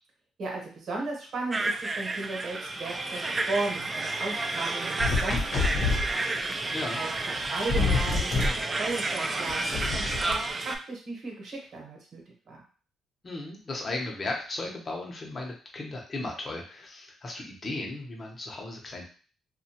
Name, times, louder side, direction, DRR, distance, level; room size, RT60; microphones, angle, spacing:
voice 1, 0.4-6.2 6.9-7.1 7.4-12.2 12.5-12.6, right 3 dB, 60° right, -1 dB, 1.0 m, -36 dB
sound 1, 1.5-10.8, right 2 dB, 25° right, 0.3 m, -31 dB
sound 2, 5.0-6.1 7.2-7.3 7.4-8.6 9.5-10.4, left 4 dB, 65° left, 0.8 m, -27 dB
voice 2, 6.7-7.0 13.2-19.0, left 2 dB, 35° left, 0 dB, 0.8 m, -36 dB
2.7 x 2.3 x 2.8 m, 0.40 s
cardioid pair, 90°, 0 cm